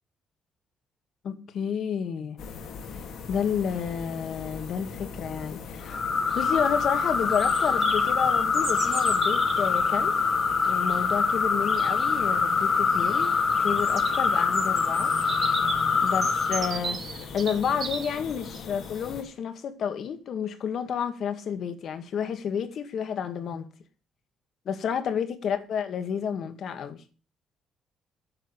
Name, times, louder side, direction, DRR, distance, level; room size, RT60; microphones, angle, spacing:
voice 1, 1.2-2.4 2.9-3.0 3.3-6.0 6.3-10.2 10.6-13.3 13.6-15.2 16.0-23.7 24.7-27.0, left 7 dB, 65° left, 1.9 m, -30 dB
sound 1, 2.4-19.2, left 5 dB, 80° left, 2.6 m, -41 dB
sound 2, 5.9-16.7, left 5 dB, 45° left, 1.9 m, -24 dB
Bird vocalization bird call bird song, 6.4-19.1, right 5 dB, 50° right, 2.3 m, -38 dB
9.9 x 6.8 x 8.3 m
cardioid pair, 90°, 0 cm